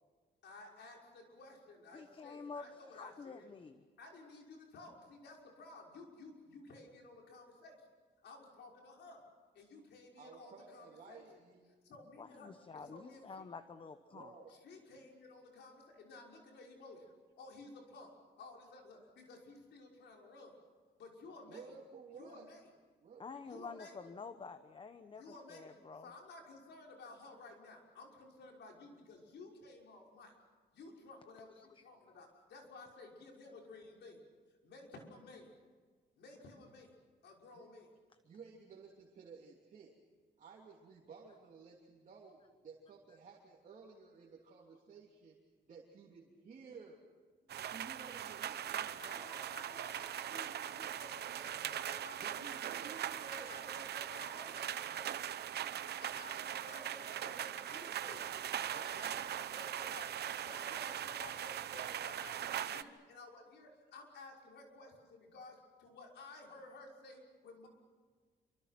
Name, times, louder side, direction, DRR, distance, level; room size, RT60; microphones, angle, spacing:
voice 1, 0.4-3.5 4.0-7.9 8.2-9.2 9.5-11.3 11.8-13.4 14.6-18.1 18.4-20.5 21.0-21.7 22.2-22.7 23.5-24.0 25.2-25.7 26.0-30.3 30.7-34.2 34.6-35.5 36.2-36.9 37.2-37.9 49.0-52.9 53.3-55.1 56.0-58.2 58.5-67.7, left 2 dB, 80° left, 0 dB, 6.0 m, -54 dB
voice 2, 1.9-3.8 12.2-14.3 23.2-26.1 31.6-32.2, left 4 dB, 30° left, 10 dB, 1.0 m, -49 dB
voice 3, 10.2-11.7 14.1-14.5 21.5-22.5 23.0-23.8 37.5-37.7 38.2-39.9 40.4-45.4 45.7-47.0 47.6-49.4 52.2-53.9 58.7-59.3, right 5 dB, 45° right, -2 dB, 3.1 m, -55 dB
sound 1, 47.5-62.8, right 10 dB, 65° right, 0.9 m, -41 dB
28.0 x 25.5 x 6.0 m, 1.5 s
wide cardioid pair, 160°, 18 cm